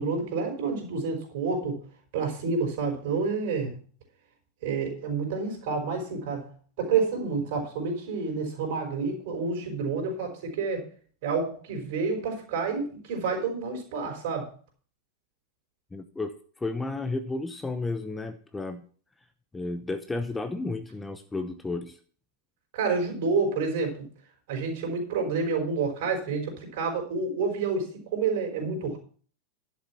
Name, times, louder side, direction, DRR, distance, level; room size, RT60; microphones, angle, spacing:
voice 1, 0.0-1.8 2.1-3.7 4.6-6.5 6.8-10.9 11.2-14.5 22.7-23.9 24.5-29.0, right 4 dB, 50° right, 3 dB, 4.9 m, -29 dB
voice 2, 15.9-16.3 16.6-18.8 19.5-22.0, left 3 dB, 10° left, 9 dB, 0.8 m, -32 dB
11.5 x 7.0 x 6.0 m, 0.44 s
figure-of-eight pair, 90°, 0 cm